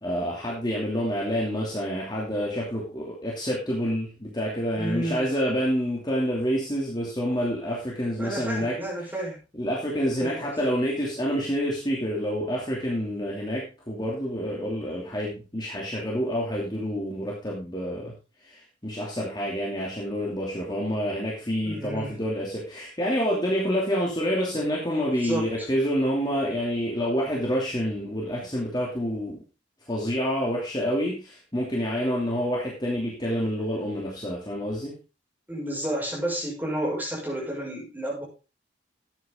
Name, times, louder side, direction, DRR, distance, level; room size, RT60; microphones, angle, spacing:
voice 1, 0.0-8.7 9.6-18.1 18.4-29.4 29.9-34.9, equal, 20° left, -3 dB, 2.9 m, -28 dB
voice 2, 4.8-5.3 8.2-9.4 10.0-10.5 21.6-22.1 25.2-25.7 35.5-38.2, right 1 dB, 10° right, -4 dB, 6.3 m, -31 dB
13.0 x 9.3 x 3.8 m, 0.31 s
head